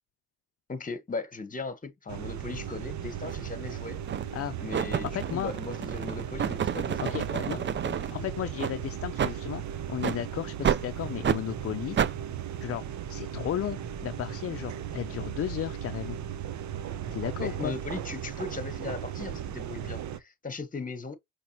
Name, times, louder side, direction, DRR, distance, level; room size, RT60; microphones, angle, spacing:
voice 1, 0.7-4.0 4.6-8.2 17.4-21.2, left 3 dB, 25° left, 1.3 m, -38 dB
sound 1, 2.1-20.2, right 9 dB, 70° right, 0.8 m, -37 dB
sound 2, 3.2-3.4 4.1-4.4 4.7-8.1 8.6-8.7 9.2-9.4 10.0-10.2 10.6-10.8 11.2-11.4 12.0-12.1, right 8 dB, 40° right, 0.5 m, -29 dB
voice 2, 5.1-5.5 7.0-7.6 8.1-9.6 9.9-12.0 12.6-12.8 13.1-16.2 17.1-17.7, left 11 dB, 50° left, 0.5 m, -34 dB
5.7 x 3.1 x 3.0 m
cardioid pair, 90°, 30 cm